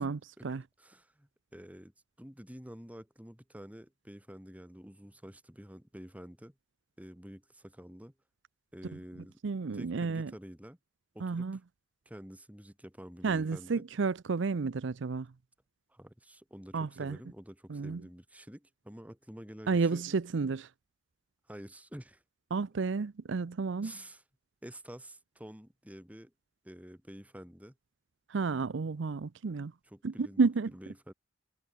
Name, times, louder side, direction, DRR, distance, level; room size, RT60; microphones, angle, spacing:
voice 1, 0.0-0.6 9.4-10.3 11.2-11.6 13.2-15.3 16.7-17.2 17.7-18.0 19.7-20.7 22.5-23.9 28.3-29.7 30.0-30.7, right 4 dB, 65° right, 0.5 m, -31 dB
voice 2, 0.8-6.6 7.0-8.1 8.7-9.4 9.7-10.8 11.1-11.5 12.1-13.8 15.9-20.0 21.5-22.2 23.8-24.2 24.6-26.3 26.6-27.8 29.9-30.4 30.7-31.1, equal, 5° right, 2.2 m, -49 dB
head